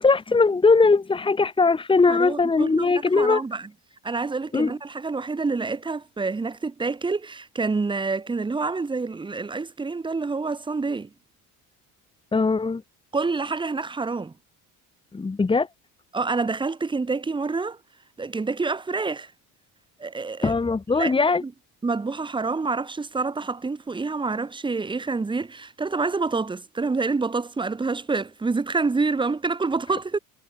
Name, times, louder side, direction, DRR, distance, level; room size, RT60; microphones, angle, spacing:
voice 1, 0.0-3.4 4.5-4.7 12.3-12.8 15.1-15.7 20.4-21.4, left 4 dB, 15° left, 3.6 m, -20 dB
voice 2, 2.1-3.7 4.0-11.1 13.1-14.3 16.1-17.8 18.2-19.3 20.0-20.5 20.9-21.1 21.4-21.5 21.8-30.2, right 4 dB, 15° right, 3.0 m, -27 dB
cardioid pair, 165°, 37 cm